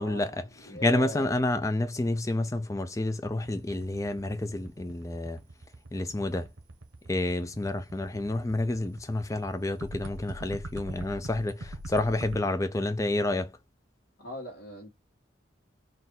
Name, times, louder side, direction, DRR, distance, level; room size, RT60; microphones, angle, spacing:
voice 1, 0.0-5.4 5.9-6.5 7.1-13.5, left 2 dB, 15° left, 0.4 m, -29 dB
voice 2, 0.6-1.3 14.2-14.9, right 2 dB, 75° left, 1.6 m, -40 dB
sound 1, 3.4-12.4, right 1 dB, 80° right, 1.1 m, -42 dB
4.2 x 2.6 x 3.7 m
head